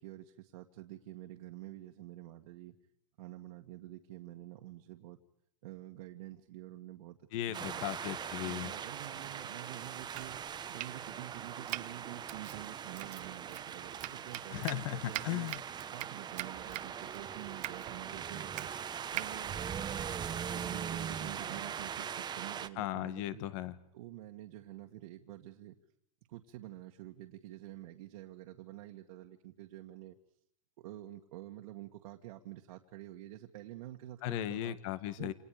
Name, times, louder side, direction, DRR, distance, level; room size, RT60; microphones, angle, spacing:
voice 1, 0.0-2.7 3.2-5.2 5.6-7.9 8.4-10.4 10.7-15.5 15.9-19.6 20.5-23.5 23.9-25.8 26.3-30.2 30.8-34.8 35.2-35.3, right 14 dB, 65° right, 2 dB, 2.1 m, -48 dB
voice 2, 7.3-8.7 14.5-15.6 22.8-23.8 34.2-35.3, left 13 dB, 55° left, 13 dB, 2.1 m, -37 dB
sound 1, 7.5-22.7, right 8 dB, 20° right, 1.2 m, -41 dB
Domestic sounds home sounds, 10.0-20.6, right 18 dB, 40° right, 0.9 m, -45 dB
29.5 x 28.5 x 5.2 m, 0.73 s
hypercardioid pair, 120°, 19 cm